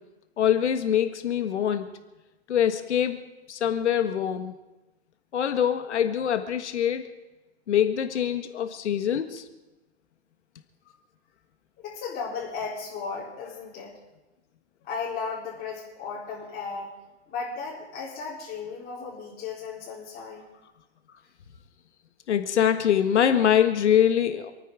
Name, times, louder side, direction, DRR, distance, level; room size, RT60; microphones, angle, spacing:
voice 1, 0.4-1.9 2.5-3.2 3.5-4.5 5.3-7.1 7.7-9.4 22.3-24.5, left 9 dB, 75° left, 8 dB, 1.7 m, -24 dB
voice 2, 11.8-13.9 14.8-16.9 17.3-20.5, left 5 dB, 25° left, -6 dB, 4.3 m, -35 dB
28.0 x 9.3 x 4.9 m, 1.1 s
hypercardioid pair, 120°, 34 cm